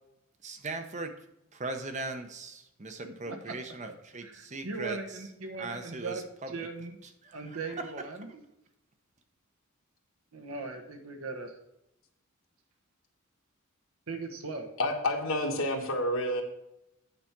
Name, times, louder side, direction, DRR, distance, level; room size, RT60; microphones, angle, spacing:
voice 1, 0.4-1.1 1.5-5.3 5.6-6.6 7.0-7.9, right 3 dB, 35° right, 7 dB, 0.8 m, -39 dB
voice 2, 3.0-3.4 4.2-6.2 6.5-6.9 7.3-8.4 10.3-11.5 14.1-14.7, right 3 dB, 75° right, 3 dB, 1.2 m, -39 dB
voice 3, 14.8-16.4, left 1 dB, 65° left, 2 dB, 1.4 m, -29 dB
8.8 x 4.9 x 5.9 m, 0.86 s
head